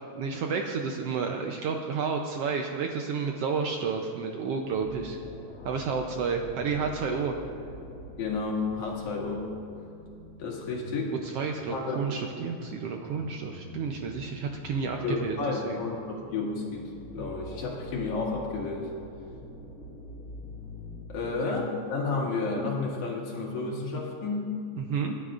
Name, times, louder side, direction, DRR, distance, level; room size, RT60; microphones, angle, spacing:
voice 1, 0.1-5.2 5.6-7.3 11.2-15.8 24.7-25.1, right 5 dB, 75° right, 3 dB, 1.4 m, -31 dB
sound 1, 4.6-21.1, left 1 dB, 35° left, 1.6 m, -46 dB
voice 2, 8.2-9.5 10.4-11.1 11.7-12.0 15.0-16.9 17.1-18.9 21.1-24.5, left 3 dB, 80° left, -3 dB, 3.4 m, -31 dB
26.5 x 10.5 x 2.5 m, 2.5 s
omnidirectional pair, 3.4 m